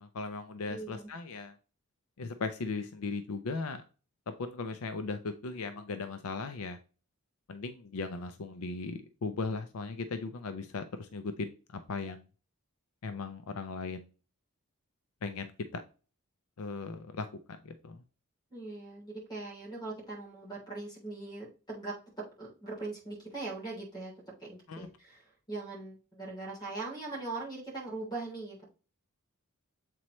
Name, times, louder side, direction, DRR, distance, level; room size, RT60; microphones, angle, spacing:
voice 1, 0.0-1.5 2.2-3.8 4.3-6.8 7.5-12.2 13.0-14.1 15.2-15.8 16.6-18.0 24.7-24.9, left 4 dB, 70° left, 9 dB, 0.5 m, -38 dB
voice 2, 0.7-1.1 18.5-24.1 24.4-28.6, right 3 dB, 20° left, -3 dB, 3.2 m, -41 dB
7.5 x 4.2 x 3.1 m, 0.35 s
head